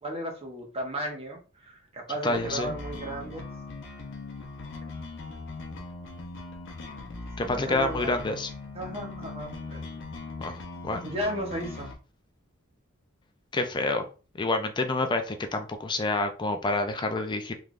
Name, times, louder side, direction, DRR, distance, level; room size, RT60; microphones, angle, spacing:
voice 1, 0.0-3.5 7.4-8.1 8.7-9.8 11.0-11.9, right 1 dB, 30° right, 1 dB, 0.9 m, -35 dB
voice 2, 2.2-2.7 7.4-8.5 10.4-10.6 10.8-11.0 13.5-14.1 14.4-17.5, left 2 dB, 20° left, 6 dB, 0.4 m, -28 dB
sound 1, 2.3-11.9, left 3 dB, 60° left, 0.7 m, -40 dB
3.3 x 3.2 x 2.5 m, 0.35 s
head